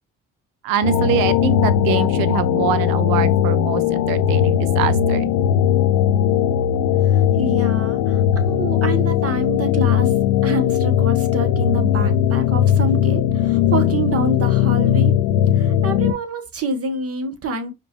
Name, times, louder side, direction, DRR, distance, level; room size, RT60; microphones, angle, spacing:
voice 1, 0.6-5.3, right 10 dB, 85° right, 0.5 m, -24 dB
sound 1, 0.8-16.1, left 10 dB, 75° left, 0.5 m, -18 dB
voice 2, 7.1-10.1 10.4-15.1 15.5-17.7, right 2 dB, 45° right, 0.9 m, -27 dB
5.1 x 2.3 x 2.8 m
supercardioid pair, 60°, 34 cm